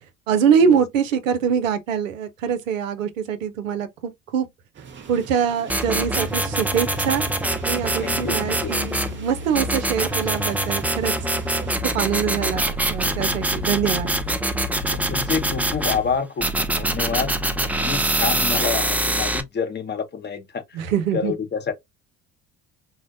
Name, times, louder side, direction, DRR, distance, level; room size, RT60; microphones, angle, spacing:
voice 1, 0.3-4.5 5.1-7.2 7.7-11.1 11.9-14.1 20.7-21.3, right 7 dB, 85° right, 0.6 m, -23 dB
sound 1, 4.7-11.8, right 6 dB, 30° right, 0.8 m, -42 dB
sound 2, 5.7-9.1 9.5-16.0 16.4-19.4, right 1 dB, 5° right, 0.4 m, -24 dB
sound 3, 5.9-16.2, left 2 dB, 90° left, 0.8 m, -37 dB
voice 2, 8.0-8.8 14.9-17.3 17.6-20.8 21.1-21.7, left 6 dB, 30° left, 0.8 m, -28 dB
3.8 x 2.1 x 2.6 m
hypercardioid pair, 60°, 38 cm